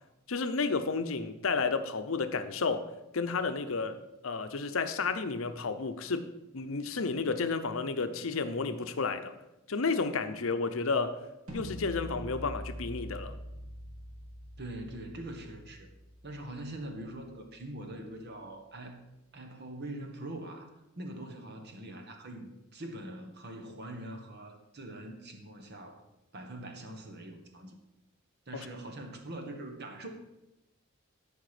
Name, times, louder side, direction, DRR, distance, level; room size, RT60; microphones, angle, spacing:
voice 1, 0.3-2.9 3.1-4.0 4.2-9.3 9.7-11.2 11.5-13.3, left 4 dB, 70° left, 10 dB, 0.7 m, -31 dB
sound 1, 11.5-17.4, equal, 75° right, 2.3 m, -44 dB
voice 2, 14.6-15.9 16.2-19.0 19.3-26.0 26.3-27.8 28.5-30.1, right 1 dB, 50° right, 4 dB, 1.4 m, -43 dB
13.0 x 5.2 x 5.0 m, 0.94 s
head